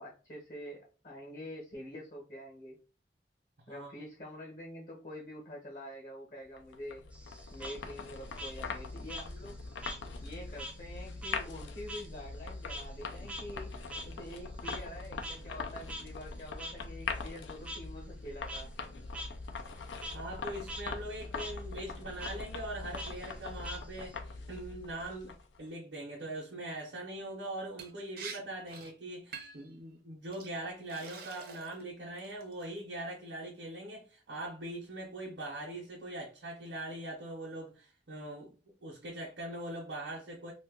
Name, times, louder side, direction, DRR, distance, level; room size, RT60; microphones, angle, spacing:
voice 1, 0.0-2.8 3.7-7.0 7.5-9.6 10.2-13.8 14.0-18.7, equal, 50° left, 1.0 m, -46 dB
voice 2, 3.7-4.0 20.1-38.5 38.8-40.5, right 1 dB, 80° right, 0.8 m, -42 dB
sound 1, 6.6-25.6, left 4 dB, 90° left, 0.5 m, -42 dB
Frog, 7.1-10.0 10.3-15.0 15.2-15.4 15.9-16.0 16.6-16.7 17.6-17.8 18.3-18.6 19.1-19.3 19.6-20.1 20.5-20.8 21.1-21.5 22.2-22.3 23.0-24.2, equal, 5° right, 0.4 m, -44 dB
Liquid, 27.8-27.9 28.2-28.4 28.7-28.9 29.3-29.7 30.3-30.5 30.9-31.8 32.2-32.6, right 5 dB, 55° right, 0.6 m, -45 dB
2.6 x 2.4 x 3.6 m
head